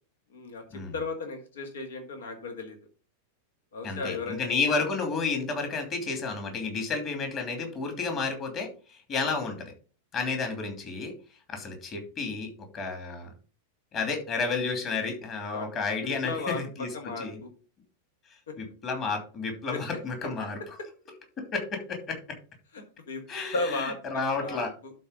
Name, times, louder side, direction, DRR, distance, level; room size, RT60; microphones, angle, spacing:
voice 1, 0.3-2.8 3.7-4.4 4.7-4.8 9.2-9.3 15.5-15.7 16.2-17.5 18.5-18.6 19.7-19.8 22.7-23.2 23.5-24.9, left 3 dB, 65° left, 6 dB, 1.8 m, -35 dB
voice 2, 3.8-9.7 10.1-11.1 11.5-13.3 13.9-17.4 18.3-20.8 21.5-22.2 23.3-24.7, left 4 dB, 30° left, 5 dB, 2.8 m, -31 dB
11.5 x 4.1 x 5.2 m, 0.38 s
figure-of-eight pair, 90°, 0 cm